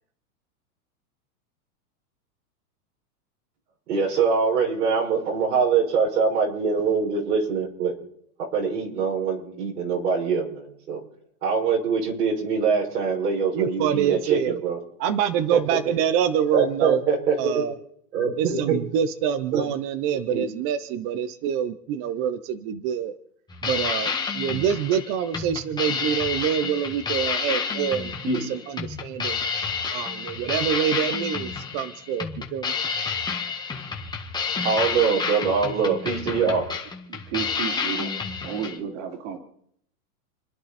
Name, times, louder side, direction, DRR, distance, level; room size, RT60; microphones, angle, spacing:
voice 1, 3.9-7.9 8.5-11.0 11.4-14.8 16.5-17.6 18.1-18.8 19.5-19.6 20.1-20.4 28.2-28.4 34.6-36.6, right 5 dB, 90° right, -1 dB, 6.2 m, -23 dB
voice 2, 13.5-14.6 15.0-17.0 17.4-17.7 18.4-23.2 23.6-29.4 29.9-32.8, right 9 dB, 30° right, 12 dB, 0.8 m, -26 dB
sound 1, 23.5-38.8, left 5 dB, 10° left, 1.6 m, -30 dB
voice 3, 37.1-38.1 38.4-39.4, right 8 dB, 50° right, 3 dB, 3.5 m, -32 dB
29.5 x 10.5 x 4.3 m, 0.68 s
supercardioid pair, 150°, 46 cm